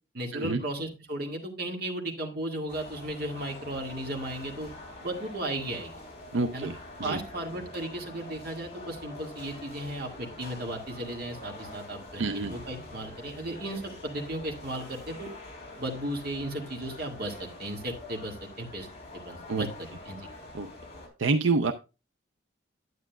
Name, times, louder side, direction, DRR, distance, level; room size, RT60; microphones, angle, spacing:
voice 1, 0.1-4.7 5.0-5.9 6.5-6.7 7.0-15.3 15.8-18.9 19.1-19.7 20.1-20.2, right 1 dB, 50° right, 1 dB, 2.0 m, -35 dB
sound 1, 2.7-21.1, left 2 dB, 35° left, 3.4 m, -45 dB
voice 2, 6.3-7.2 12.2-12.5 19.5-19.7 20.5-20.7 21.2-21.7, right 3 dB, 80° right, 7 dB, 0.5 m, -27 dB
9.8 x 9.0 x 2.3 m, 0.29 s
head